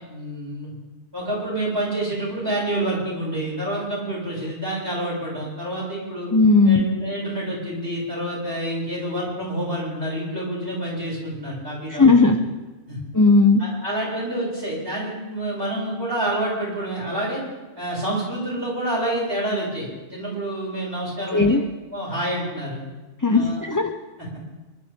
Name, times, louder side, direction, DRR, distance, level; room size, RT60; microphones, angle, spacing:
voice 1, 0.1-0.7 1.1-6.3 6.6-12.3 12.9-13.0 13.6-17.4 17.8-21.6 21.9-22.8 23.3-23.6, right 1 dB, 20° right, -6 dB, 7.3 m, -28 dB
voice 2, 6.3-6.8 12.0-12.4 13.1-13.6 21.3-21.6 23.2-23.9, left 3 dB, 20° left, 4 dB, 0.7 m, -16 dB
28.0 x 12.5 x 3.8 m, 1.2 s
omnidirectional pair, 1.2 m